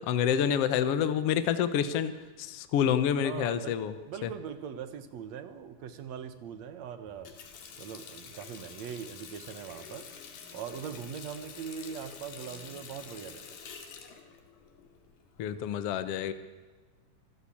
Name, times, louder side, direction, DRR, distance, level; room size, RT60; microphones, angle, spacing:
voice 1, 0.0-2.1 2.4-3.9 4.2-4.3 15.4-16.3, left 8 dB, 65° left, 11 dB, 1.6 m, -28 dB
voice 2, 3.2-7.3 7.8-10.1 10.5-13.6, right 7 dB, 60° right, 11 dB, 2.3 m, -41 dB
Water tap faucet, 7.1-15.5, left 6 dB, 85° left, 3.8 m, -48 dB
25.5 x 15.0 x 8.6 m, 1.4 s
omnidirectional pair, 3.7 m